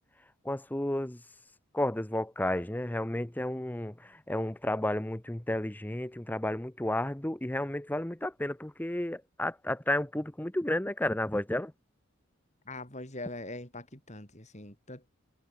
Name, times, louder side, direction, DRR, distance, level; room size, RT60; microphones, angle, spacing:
voice 1, 0.4-1.2 1.7-11.7, left 1 dB, 10° left, 0.7 m, -32 dB
voice 2, 12.6-15.1, left 2 dB, 30° left, 6.7 m, -42 dB
head